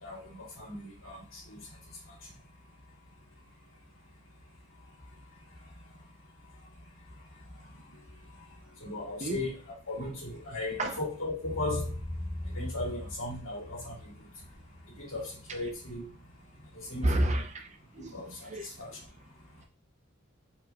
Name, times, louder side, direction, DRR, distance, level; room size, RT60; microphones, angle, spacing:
voice 1, 0.0-1.2 1.5-1.6 8.8-9.6 9.9-12.0 12.5-13.9 15.0-16.1 16.8-17.4 18.1-18.5 18.8-18.9, left 2 dB, 75° left, 2.3 m, -36 dB
voice 2, 17.0-18.2 18.5-18.7, right 1 dB, 35° right, 0.6 m, -30 dB
4.6 x 2.8 x 2.5 m
head